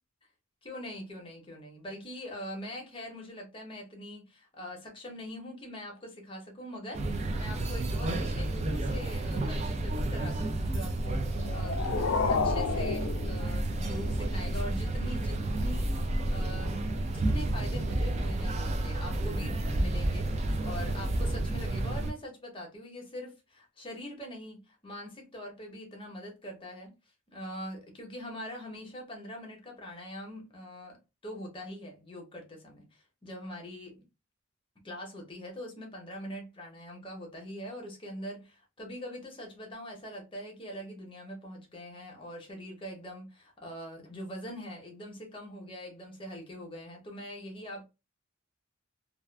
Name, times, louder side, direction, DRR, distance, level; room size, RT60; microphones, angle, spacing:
voice 1, 0.6-26.9 27.3-31.0 31.2-34.0 34.8-47.8, equal, 25° left, 0.8 m, -43 dB
sound 1, 6.9-22.1, right 1 dB, 35° right, 0.3 m, -31 dB
sound 2, 11.3-14.2, left 5 dB, 75° left, 0.4 m, -31 dB
2.4 x 2.3 x 2.2 m
head